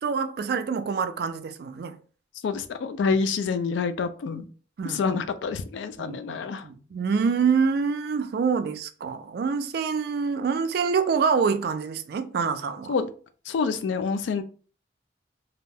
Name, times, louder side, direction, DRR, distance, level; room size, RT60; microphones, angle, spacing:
voice 1, 0.0-2.0 4.8-5.2 6.0-12.9, right 5 dB, 55° right, 0.3 m, -26 dB
voice 2, 2.4-4.5 4.9-6.6 12.9-13.1 13.5-14.4, left 5 dB, 75° left, 0.3 m, -27 dB
2.4 x 2.2 x 3.2 m
head